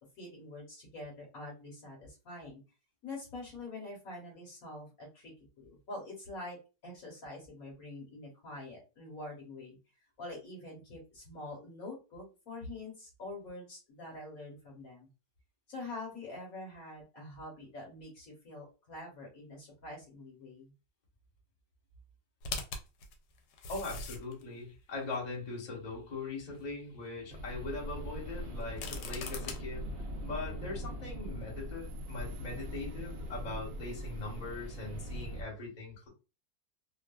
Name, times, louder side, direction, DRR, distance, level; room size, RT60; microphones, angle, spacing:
voice 1, 0.2-2.6 3.0-9.8 10.2-15.1 15.7-20.7, left 2 dB, 60° left, 1.4 m, -45 dB
sound 1, 22.4-24.4 25.1-25.2 28.6-29.6, left 4 dB, 85° left, 1.2 m, -40 dB
voice 2, 23.7-36.1, left 3 dB, 30° left, 1.0 m, -41 dB
sound 2, 27.3-35.4, equal, 70° right, 0.5 m, -41 dB
2.9 x 2.3 x 2.3 m
omnidirectional pair, 1.8 m